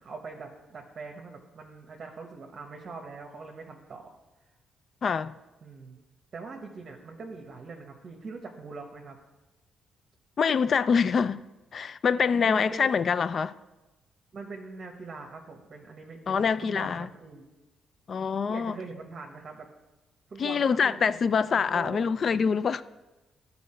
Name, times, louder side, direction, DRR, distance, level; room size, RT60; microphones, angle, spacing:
voice 1, 0.0-4.2 5.6-6.0 6.3-9.2 12.4-13.0 14.3-17.4 18.5-19.7 20.3-21.2 21.7-22.1, right 4 dB, 45° right, 0.9 m, -42 dB
voice 2, 5.0-5.3 10.4-11.4 11.7-13.6 16.3-17.1 18.1-18.8 20.4-22.8, left 6 dB, 50° left, 0.3 m, -25 dB
12.0 x 4.2 x 4.3 m
cardioid pair, 90°, 0 cm